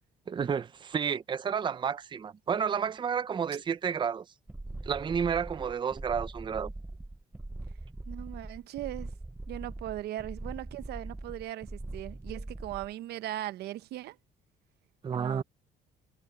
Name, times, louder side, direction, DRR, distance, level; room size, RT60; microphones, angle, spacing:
voice 1, 0.3-4.2 4.8-6.7 15.0-15.4, right 7 dB, 30° right, 0.6 m, -31 dB
sound 1, 4.5-12.9, right 2 dB, 10° right, 1.0 m, -42 dB
voice 2, 8.1-9.1 9.5-14.2 15.1-15.4, right 14 dB, 75° right, 0.9 m, -39 dB
cardioid pair, 110°, 17 cm